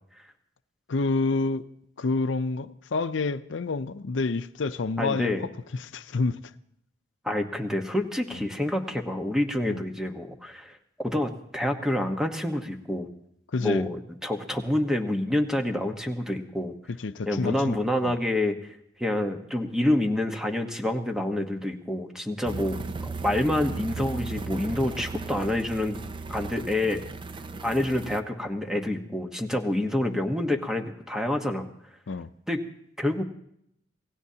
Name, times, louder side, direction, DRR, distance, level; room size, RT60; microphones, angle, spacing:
voice 1, 0.9-1.7 2.0-5.3 5.9-6.4 9.6-9.8 13.5-13.9 17.0-17.8 18.1-18.2 32.1-32.3, left 3 dB, 85° left, 0.6 m, -28 dB
voice 2, 5.0-5.5 7.2-10.8 11.0-13.1 13.6-16.8 17.3-26.0 26.3-27.0 27.6-31.7 32.5-32.6 33.0-33.2, left 1 dB, 5° right, 1.1 m, -27 dB
sound 1, 22.4-28.2, right 3 dB, 25° right, 0.5 m, -36 dB
27.0 x 17.0 x 2.8 m
head